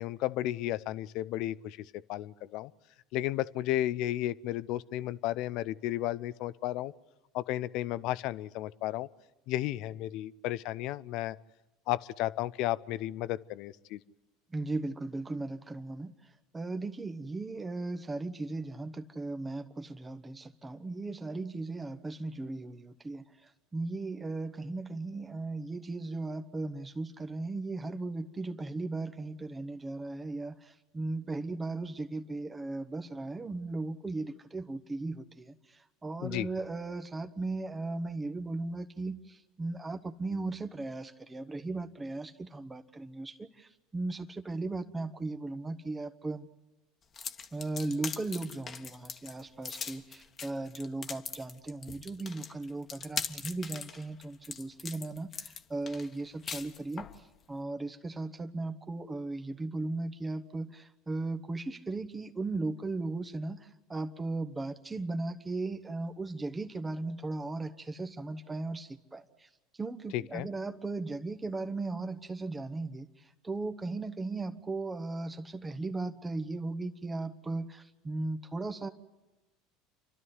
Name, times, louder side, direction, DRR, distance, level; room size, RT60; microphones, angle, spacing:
voice 1, 0.0-1.8 2.1-2.7 3.1-6.9 7.3-9.1 9.5-11.4 11.9-14.0 36.2-36.5 70.1-70.5, left 14 dB, 60° left, 17 dB, 0.6 m, -33 dB
voice 2, 14.5-46.5 47.5-69.5 69.7-78.9, right 2 dB, 20° right, 8 dB, 1.3 m, -37 dB
sound 1, 47.1-57.2, left 6 dB, 35° left, 1.4 m, -41 dB
28.5 x 12.5 x 9.6 m, 1.1 s
hypercardioid pair, 80°, 0 cm